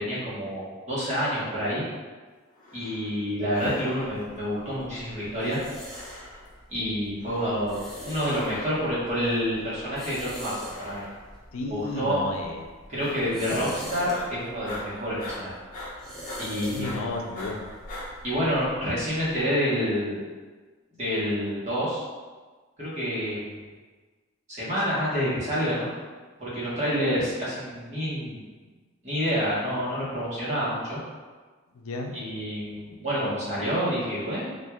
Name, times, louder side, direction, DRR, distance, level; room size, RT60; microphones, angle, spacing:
voice 1, 0.0-1.8 2.7-5.6 6.7-11.0 11.7-12.2 12.9-15.5 16.4-16.9 18.2-20.2 21.0-22.0 22.8-23.5 24.5-25.9 26.4-28.4 29.0-31.0 32.1-34.5, equal, 35° right, -9 dB, 1.2 m, -28 dB
sound 1, 2.5-3.2 3.5-4.3 4.9-5.6 5.9-6.6 7.2-7.8 8.2-8.9 9.5-10.1 10.6-11.4 11.8-12.3 13.0-13.6 13.9-18.1, left 1 dB, 40° left, 0.7 m, -43 dB
sound 2, 4.0-19.4, equal, ahead, 0.6 m, -44 dB
voice 2, 11.5-12.7 13.4-13.7 16.6-17.6 31.7-32.1, left 2 dB, 85° left, 2 dB, 0.4 m, -33 dB
4.3 x 2.5 x 2.3 m, 1.4 s
head